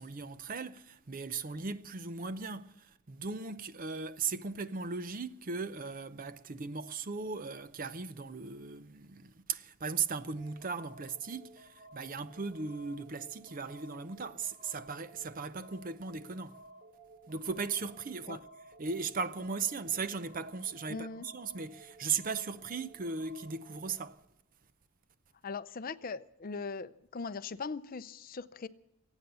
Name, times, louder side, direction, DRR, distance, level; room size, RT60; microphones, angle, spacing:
voice 1, 0.0-16.6 17.3-18.5 18.8-24.2, right 5 dB, 40° right, 0.6 m, -37 dB
sound 1, 10.4-24.1, right 2 dB, 20° right, 2.1 m, -56 dB
voice 2, 20.9-21.3 25.4-28.7, left 4 dB, 40° left, 0.5 m, -40 dB
23.0 x 9.0 x 6.8 m
head